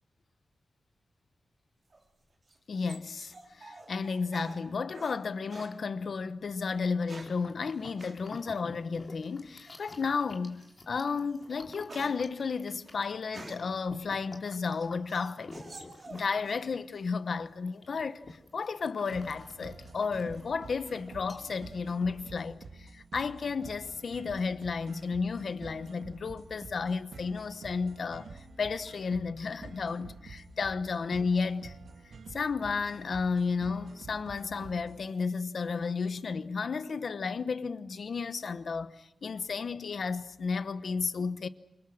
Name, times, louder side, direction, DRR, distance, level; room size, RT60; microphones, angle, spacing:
sound 1, 1.9-5.2 5.5-5.8 6.7-7.5 8.0-8.2 9.7-10.1 10.6-10.8 11.2-13.8 14.3-16.7 16.9-17.6, right 3 dB, 40° right, 3.6 m, -49 dB
voice 1, 2.7-15.5 16.1-31.8 32.3-41.5, left 5 dB, 60° left, 1.0 m, -33 dB
sound 2, 6.7-22.5, left 2 dB, 35° left, 3.2 m, -51 dB
sound 3, 19.1-35.1, right 4 dB, 85° right, 2.6 m, -49 dB
28.0 x 25.0 x 6.4 m
wide cardioid pair, 125°, 0 cm